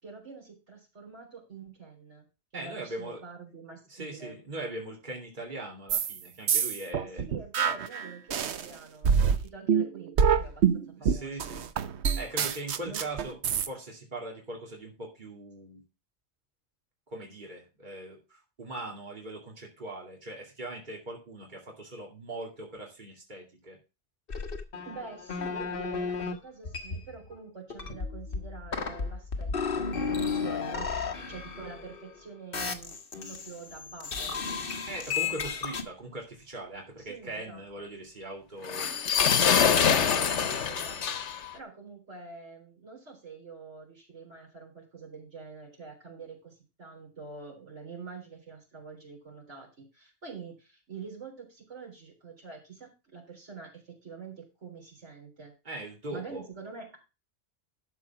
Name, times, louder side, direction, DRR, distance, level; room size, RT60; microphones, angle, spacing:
voice 1, 0.0-2.2 2.5-4.4 7.2-11.6 12.8-13.1 24.9-29.5 29.7-30.9 31.3-33.0 33.3-34.5 37.0-37.9 40.0-41.2 41.5-55.5 56.1-57.0, right 5 dB, 90° right, -1 dB, 4.2 m, -46 dB
voice 2, 2.5-3.2 3.9-7.3 11.0-11.7 12.2-15.8 17.1-23.8 34.9-38.9 39.4-40.3 55.6-56.4, right 2 dB, 40° right, -1 dB, 2.7 m, -40 dB
sound 1, 5.9-6.2 6.5-8.7 9.0-13.7, right 7 dB, 70° right, 1.0 m, -26 dB
sound 2, 24.3-26.3 26.6-27.3 27.7-32.2 32.5-33.7 34.0-35.8, left 5 dB, 55° left, 1.4 m, -33 dB
sound 3, 38.6-41.5, left 7 dB, 85° left, 1.2 m, -24 dB
12.0 x 4.9 x 5.9 m, 0.29 s
omnidirectional pair, 1.2 m